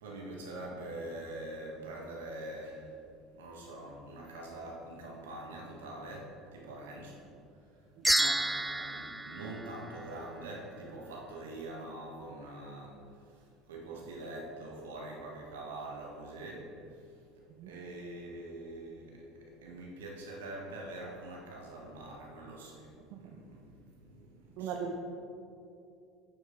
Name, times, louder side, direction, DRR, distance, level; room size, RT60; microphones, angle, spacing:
voice 1, 0.0-3.0 3.3-7.2 7.5-24.9, right 1 dB, 80° right, -1 dB, 1.7 m, -45 dB
sound 1, 8.0-10.5, right 1 dB, 5° right, 0.4 m, -31 dB
voice 2, 8.0-8.4 17.6-17.8 23.1-23.2 24.6-25.0, right 5 dB, 60° right, 2 dB, 0.6 m, -39 dB
9.9 x 6.9 x 3.9 m, 2.6 s
hypercardioid pair, 75°, 0 cm